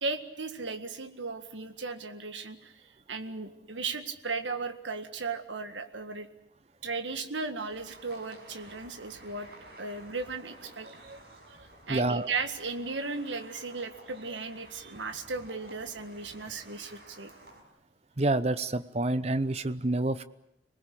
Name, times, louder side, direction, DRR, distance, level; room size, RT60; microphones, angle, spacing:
voice 1, 0.0-6.3 6.8-9.5 9.8-17.3, right 4 dB, 85° right, 8 dB, 1.9 m, -36 dB
sound 1, 7.7-17.6, right 1 dB, 55° right, 5.6 m, -52 dB
voice 2, 11.9-12.3 18.2-20.2, right 2 dB, 35° right, 14 dB, 0.8 m, -28 dB
26.5 x 20.0 x 8.6 m, 0.84 s
head